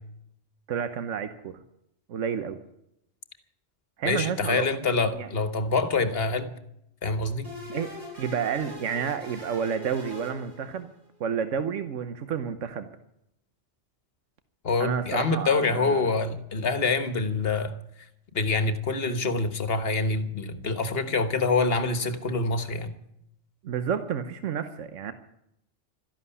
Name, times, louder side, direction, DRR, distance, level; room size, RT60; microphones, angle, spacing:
voice 1, 0.7-1.6 2.1-2.6 4.0-4.7 5.1-5.3 7.7-7.9 8.2-10.9 11.2-12.9 14.8-16.1 23.6-25.1, right 7 dB, 85° right, 10 dB, 1.3 m, -30 dB
voice 2, 4.0-6.5 7.0-7.5 14.6-17.7 18.3-22.9, left 3 dB, 55° left, 11 dB, 1.5 m, -26 dB
sound 1, 7.4-11.0, equal, 70° right, 7.9 m, -42 dB
13.5 x 11.0 x 9.7 m, 0.78 s
omnidirectional pair, 1.2 m